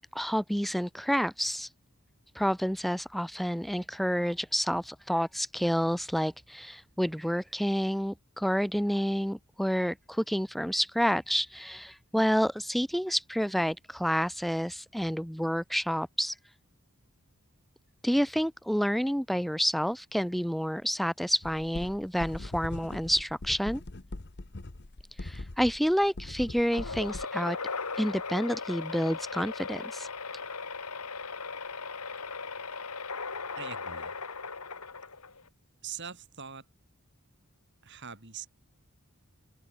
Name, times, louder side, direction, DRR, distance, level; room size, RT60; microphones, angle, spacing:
voice 1, 0.1-1.7 2.4-16.3 18.0-23.8 25.2-27.6 28.0-30.1, equal, ahead, 0.5 m, -29 dB
sound 1, 21.4-27.2, left 2 dB, 50° left, 1.1 m, -41 dB
sound 2, 26.7-35.5, left 4 dB, 90° left, 3.8 m, -38 dB
voice 2, 33.6-34.1 35.8-36.7 37.8-38.5, right 7 dB, 50° right, 2.9 m, -42 dB
open air
head